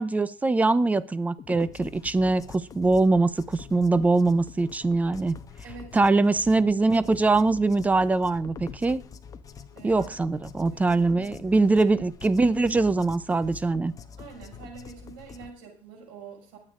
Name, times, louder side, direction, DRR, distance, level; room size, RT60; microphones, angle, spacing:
voice 1, 0.0-5.4 5.9-9.0 9.8-13.9, right 3 dB, 10° right, 16 dB, 0.7 m, -23 dB
sound 1, 1.4-15.5, left 6 dB, 30° left, 1.1 m, -45 dB
voice 2, 5.6-6.1 9.7-10.1 10.7-11.5 14.2-16.6, right 5 dB, 85° right, 2 dB, 6.2 m, -46 dB
21.5 x 8.9 x 3.8 m, 0.41 s
cardioid pair, 125°, 12 cm